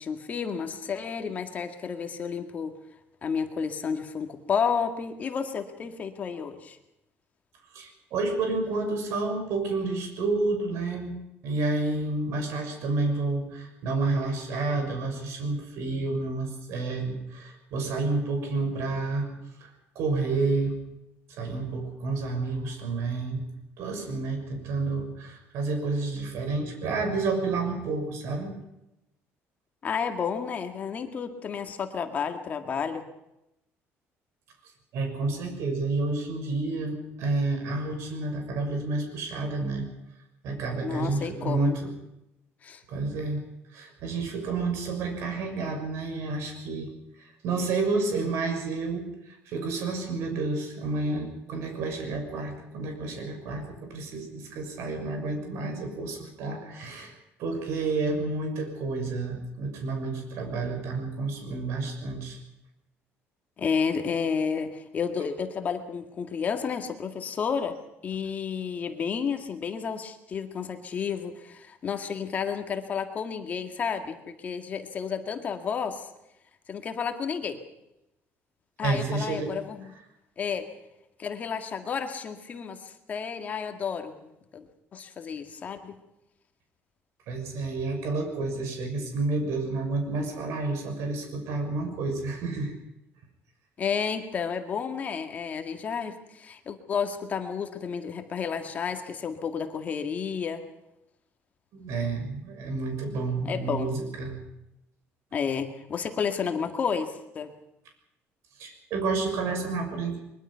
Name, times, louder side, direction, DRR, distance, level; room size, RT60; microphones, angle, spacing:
voice 1, 0.0-2.7 3.2-6.8 29.8-33.1 40.8-41.8 42.6-42.8 63.6-67.8 68.0-76.0 76.7-77.6 78.8-79.9 80.4-80.7 81.2-84.2 84.5-84.6 84.9-86.0 93.8-100.6 103.4-103.9 105.3-107.5, left 6 dB, 30° left, 6 dB, 2.0 m, -31 dB
voice 2, 7.7-11.2 11.4-19.3 19.6-19.7 19.9-20.8 21.3-23.4 23.8-28.5 34.9-39.9 40.4-41.9 42.9-43.4 43.7-46.9 47.2-62.4 78.8-79.6 87.3-92.7 101.7-104.4 108.6-110.2, right 3 dB, 65° right, 5 dB, 6.5 m, -30 dB
22.5 x 22.5 x 5.8 m, 0.87 s
cardioid pair, 170°, 5 cm